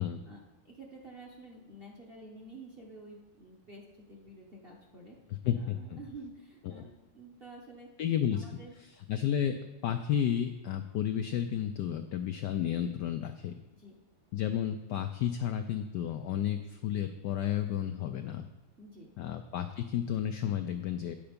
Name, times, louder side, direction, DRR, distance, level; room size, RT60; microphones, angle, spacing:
voice 1, 0.3-5.2 5.5-7.9 8.3-8.7 13.7-14.0 18.8-19.1, right 2 dB, 40° right, -2 dB, 0.9 m, -50 dB
voice 2, 5.4-6.0 6.7-6.8 8.0-8.6 9.1-13.6 14.3-18.5 19.2-21.2, left 10 dB, 80° left, 7 dB, 0.9 m, -32 dB
9.6 x 7.0 x 5.1 m, 1.1 s
omnidirectional pair, 2.4 m